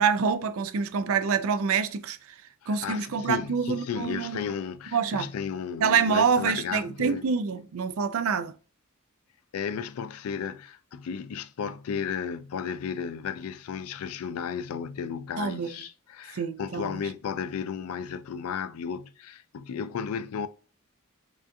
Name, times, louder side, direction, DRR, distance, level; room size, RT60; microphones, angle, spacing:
voice 1, 0.0-2.2 2.7-4.5 4.9-5.3 5.8-8.5 15.4-15.8 16.3-17.0, right 6 dB, 70° right, 0.4 m, -26 dB
voice 2, 2.6-7.2 9.5-20.5, left 7 dB, 85° left, 0.4 m, -34 dB
5.0 x 2.4 x 2.6 m
head